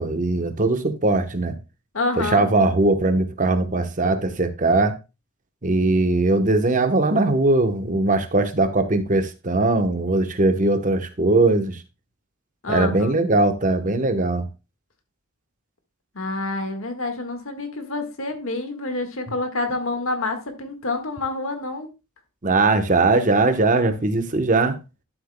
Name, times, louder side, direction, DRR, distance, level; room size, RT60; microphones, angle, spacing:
voice 1, 0.0-1.5 2.2-4.9 5.6-11.8 12.7-14.4 22.4-24.8, right 2 dB, 40° right, 8 dB, 1.0 m, -20 dB
voice 2, 1.9-2.5 12.6-13.1 16.1-21.9, left 2 dB, 75° left, 6 dB, 1.6 m, -28 dB
12.0 x 7.8 x 2.2 m, 0.27 s
head